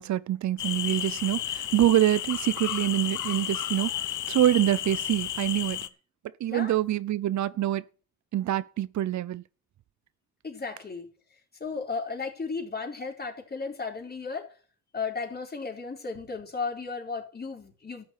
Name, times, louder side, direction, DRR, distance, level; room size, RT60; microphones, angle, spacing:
voice 1, 0.0-5.8 6.4-7.9 8.3-9.4, right 13 dB, 70° right, 0.7 m, -25 dB
sound 1, 0.6-5.9, left 12 dB, 90° left, 1.1 m, -32 dB
voice 2, 10.4-11.1 11.6-14.5 14.9-18.1, left 4 dB, 35° left, 4.4 m, -34 dB
13.5 x 7.1 x 9.3 m
cardioid pair, 95°, 29 cm